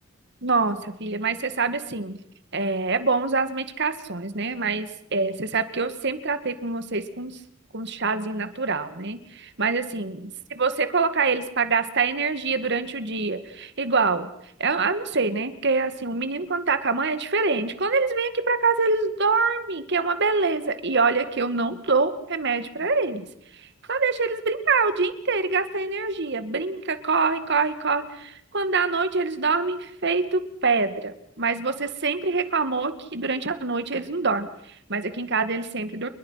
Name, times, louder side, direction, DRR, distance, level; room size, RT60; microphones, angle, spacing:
voice 1, 0.4-2.2 2.5-7.4 7.7-14.3 14.6-23.3 23.5-36.1, right 4 dB, 60° right, 11 dB, 2.1 m, -25 dB
29.5 x 22.0 x 5.8 m, 0.71 s
head